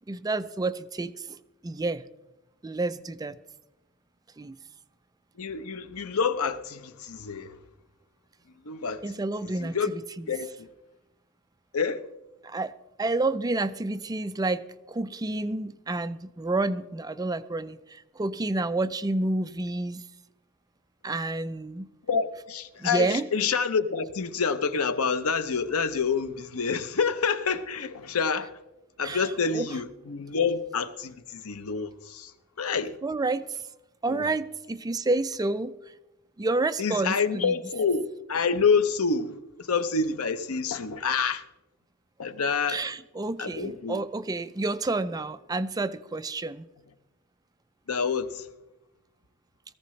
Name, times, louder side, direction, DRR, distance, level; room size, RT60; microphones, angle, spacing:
voice 1, 0.1-1.4 1.6-2.0 2.6-3.4 4.4-4.6 9.0-10.0 12.4-12.7 13.0-20.0 21.0-21.9 22.8-23.3 29.0-29.7 33.0-33.6 34.0-35.7 36.4-37.5 42.7-46.6, right 2 dB, 15° right, 0.4 m, -29 dB
voice 2, 5.4-7.6 8.6-9.0 9.6-9.9 10.3-10.7 11.7-12.0 22.1-28.5 29.0-32.3 32.6-33.0 34.1-34.2 36.8-41.4 42.2-42.8 43.4-44.0 47.9-48.5, left 5 dB, 85° left, 0.8 m, -27 dB
18.5 x 14.5 x 3.2 m
head